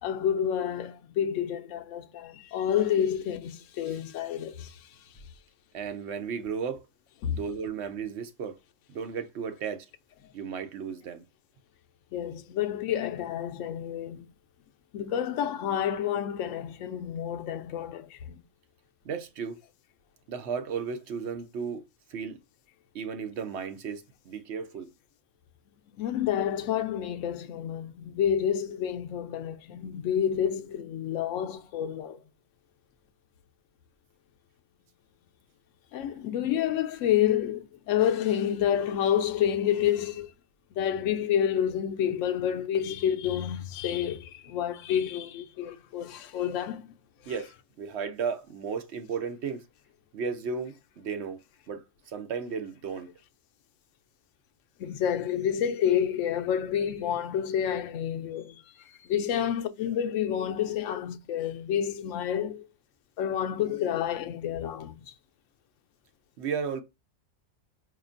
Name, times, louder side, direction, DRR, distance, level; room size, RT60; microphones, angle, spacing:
voice 1, 0.0-4.9 7.2-7.4 12.1-14.3 14.9-18.4 25.9-32.2 35.9-40.3 40.7-46.9 47.2-47.4 54.8-62.7 63.2-65.1, left 9 dB, 80° left, 0.9 m, -29 dB
voice 2, 5.7-6.8 7.3-8.6 8.9-9.9 10.3-11.2 19.0-19.6 20.3-21.8 22.1-22.4 22.9-24.9 47.3-49.6 50.1-51.4 51.7-53.1 66.4-66.8, right 6 dB, 65° right, 1.0 m, -34 dB
4.7 x 2.8 x 2.5 m
omnidirectional pair, 1.3 m